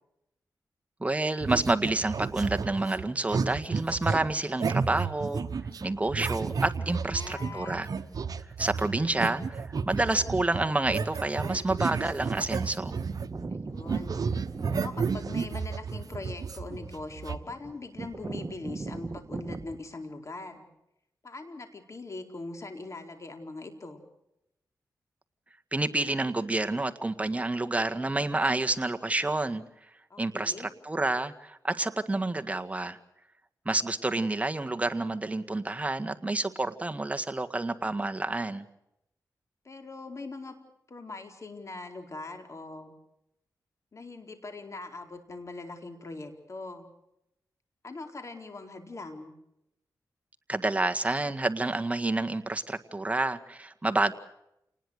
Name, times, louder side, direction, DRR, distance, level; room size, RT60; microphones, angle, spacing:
voice 1, 1.0-5.5 5.8-7.9 8.6-12.9 25.7-29.6 30.2-33.0 33.7-38.7 50.5-54.1, right 2 dB, 20° right, 7 dB, 1.8 m, -29 dB
sound 1, 1.4-13.5 13.7-17.4, right 5 dB, 65° right, 1.3 m, -32 dB
voice 2, 7.1-7.9 13.5-14.1 14.6-20.6 21.2-24.0 30.1-30.7 39.6-40.5 40.9-42.9 43.9-46.9 47.8-49.3, left 3 dB, 45° left, 6 dB, 4.4 m, -41 dB
sound 2, 9.1-9.5 10.6-10.7 11.3-11.7 12.0-12.1 12.3-19.7, right 3 dB, 40° right, 1.7 m, -40 dB
28.0 x 20.0 x 6.7 m, 0.83 s
cardioid pair, 70°, 7 cm